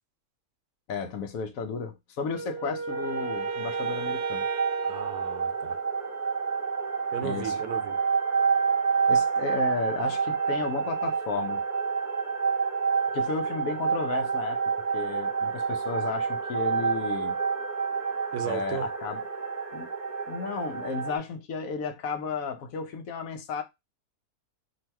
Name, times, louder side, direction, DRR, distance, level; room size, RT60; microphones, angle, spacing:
voice 1, 0.9-4.5 7.2-7.6 9.1-11.6 13.1-14.6 14.9-17.4 18.4-19.2 19.7-19.9 20.3-23.6, left 5 dB, 70° left, 1.0 m, -33 dB
Wind instrument woodwind instrument, 2.3-6.2, right 4 dB, 60° right, 0.9 m, -35 dB
sound 1, 2.9-21.2, right 5 dB, 15° right, 0.8 m, -28 dB
voice 2, 4.8-5.8 7.1-8.0 18.3-18.9, right 9 dB, 85° right, 1.2 m, -35 dB
2.9 x 2.7 x 4.3 m
omnidirectional pair, 1.6 m